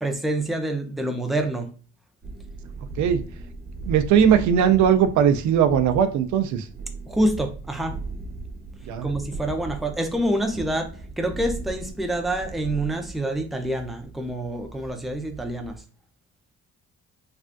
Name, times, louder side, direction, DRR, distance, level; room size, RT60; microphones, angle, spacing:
voice 1, 0.0-1.7 7.1-8.0 9.0-10.9 11.2-15.8, right 1 dB, ahead, 4 dB, 0.5 m, -27 dB
sound 1, 2.2-15.8, right 3 dB, 30° right, 0.7 m, -38 dB
voice 2, 3.8-6.7 8.9-9.1, right 8 dB, 70° right, 9 dB, 0.5 m, -19 dB
3.3 x 2.4 x 2.5 m, 0.39 s
cardioid pair, 90°, 30 cm